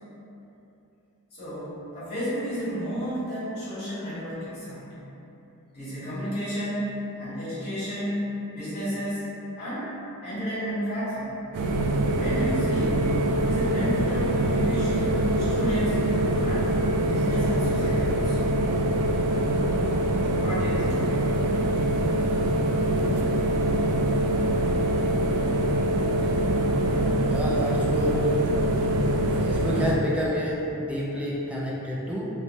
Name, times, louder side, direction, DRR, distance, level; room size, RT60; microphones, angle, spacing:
voice 1, 1.3-5.0 5.7-9.3 9.6-9.9 10.2-11.4 12.2-13.1 13.4-16.0 16.4-16.7 17.0-18.4 20.4-21.1, equal, 50° left, -13 dB, 1.5 m, -32 dB
sound 1, 11.5-29.9, right 1 dB, 85° right, 0.3 m, -24 dB
voice 2, 27.3-28.3 29.3-32.3, equal, 5° right, -5 dB, 0.3 m, -29 dB
3.0 x 2.1 x 2.7 m, 2.9 s
head